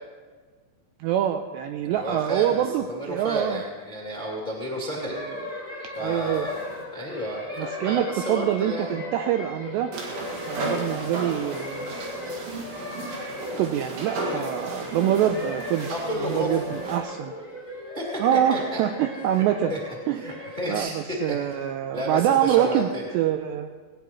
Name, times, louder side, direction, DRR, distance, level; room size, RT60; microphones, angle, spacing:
voice 1, 1.0-3.6 4.7-5.5 6.0-6.5 7.6-9.9 10.5-12.0 13.6-15.9 16.2-17.3 18.2-19.8 20.1-20.2 20.7-23.7, right 11 dB, 85° right, 6 dB, 2.5 m, -25 dB
voice 2, 1.8-5.1 5.9-6.6 6.9-8.9 15.9-16.6 17.9-18.8 19.3-19.4 19.7-19.8 20.1-20.9 21.3-21.5 21.9-23.0, equal, 30° left, -4 dB, 0.9 m, -31 dB
sound 1, 5.1-20.8, left 2 dB, 15° right, 4.4 m, -37 dB
sound 2, 5.9-6.8 9.9-17.0, right 2 dB, 65° right, 3.8 m, -34 dB
18.5 x 18.5 x 3.1 m, 1.5 s
omnidirectional pair, 5.5 m